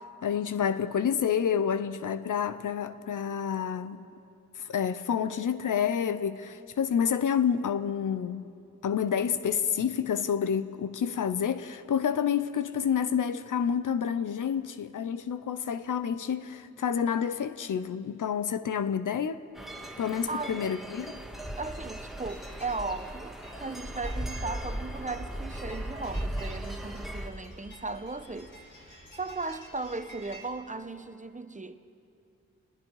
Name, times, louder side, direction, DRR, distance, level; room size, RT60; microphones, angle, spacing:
voice 1, 0.0-4.1 4.6-8.5 8.8-19.4 20.0-21.1, left 8 dB, 75° left, 0.8 m, -29 dB
sound 1, 19.6-27.3, right 1 dB, ahead, 1.9 m, -37 dB
voice 2, 20.3-20.7 21.6-28.6 29.2-31.8, right 3 dB, 25° right, 1.1 m, -37 dB
sound 2, 22.2-30.5, equal, 40° left, 6.4 m, -51 dB
27.0 x 20.5 x 4.8 m
cardioid pair, 50°, 31 cm